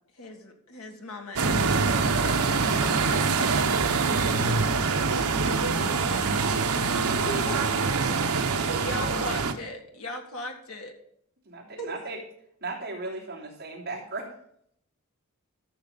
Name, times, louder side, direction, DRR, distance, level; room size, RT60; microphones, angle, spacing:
voice 1, 0.2-2.4 8.8-10.9, left 2 dB, 80° left, 3 dB, 1.8 m, -39 dB
sound 1, 1.4-9.5, right 4 dB, 85° right, 0.9 m, -24 dB
voice 2, 1.6-1.7, right 3 dB, 25° right, -6 dB, 4.2 m, -46 dB
voice 3, 7.2-7.7 8.6-9.4 11.8-11.9, right 1 dB, 60° left, -2 dB, 3.7 m, -36 dB
voice 4, 11.4-12.2 12.6-14.3, right 3 dB, 45° right, -3 dB, 3.1 m, -36 dB
13.5 x 6.9 x 4.0 m, 0.69 s
head